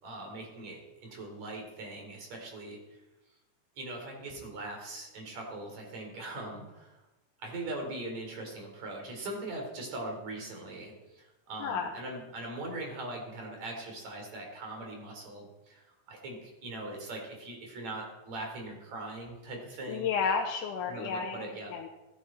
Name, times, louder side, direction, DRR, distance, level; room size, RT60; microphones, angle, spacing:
voice 1, 0.0-2.8 3.8-7.0 7.4-20.1 20.9-21.7, right 2 dB, 55° right, 1 dB, 4.5 m, -41 dB
voice 2, 11.6-11.9 19.9-21.9, left 6 dB, 75° left, 1 dB, 2.5 m, -32 dB
16.5 x 13.0 x 4.3 m, 1.0 s
omnidirectional pair, 3.8 m